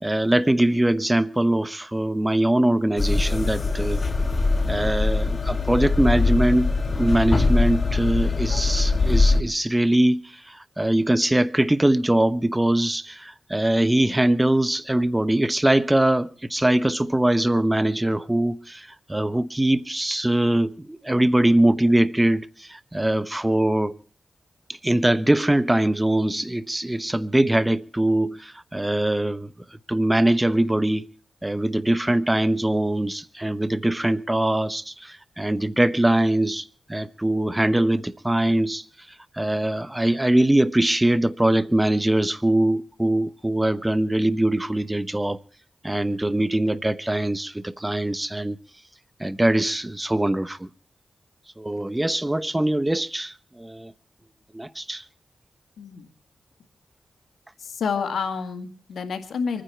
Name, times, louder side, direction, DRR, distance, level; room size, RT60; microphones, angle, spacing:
voice 1, 0.0-4.0 4.7-6.7 7.0-10.2 10.5-24.0 24.7-29.5 29.9-31.1 31.4-38.8 39.4-45.4 45.8-48.6 49.2-50.7 51.6-53.9 54.5-55.0, right 1 dB, 15° right, 1.0 m, -22 dB
sound 1, 3.0-9.4, left 3 dB, 50° left, 1.8 m, -22 dB
voice 2, 55.8-56.1 57.6-59.6, left 5 dB, 85° left, 1.9 m, -29 dB
25.0 x 10.0 x 4.5 m
cardioid pair, 45°, 0 cm